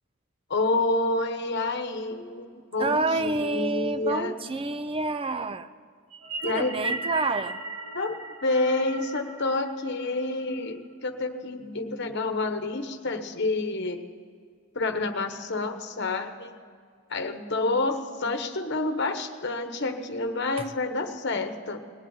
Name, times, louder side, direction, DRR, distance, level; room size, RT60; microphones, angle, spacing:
voice 1, 0.5-4.4 6.4-7.0 7.9-14.0 14.7-16.5 17.1-21.8, left 2 dB, 50° left, 7 dB, 1.1 m, -28 dB
voice 2, 2.8-5.7 6.4-7.6 20.6-20.7, right 3 dB, 25° right, 12 dB, 0.5 m, -28 dB
sound 1, 6.1-10.6, right 2 dB, 80° right, 1.6 m, -37 dB
19.5 x 8.2 x 8.8 m, 2.1 s
head